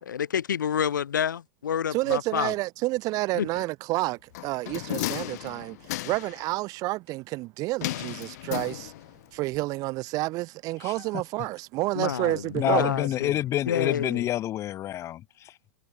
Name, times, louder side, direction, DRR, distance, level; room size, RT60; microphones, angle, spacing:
voice 1, 0.0-2.5 3.3-3.6 11.9-13.4 13.7-14.3, left 8 dB, 90° left, 1.0 m, -29 dB
voice 2, 1.9-5.8 6.0-8.9 9.3-12.9, right 20 dB, 35° right, 0.6 m, -29 dB
sound 1, 4.3-6.4 7.8-9.2 9.5-9.6, left 17 dB, 60° left, 1.9 m, -34 dB
voice 3, 12.5-15.7, left 13 dB, 30° left, 0.7 m, -28 dB
hypercardioid pair, 125°, 10 cm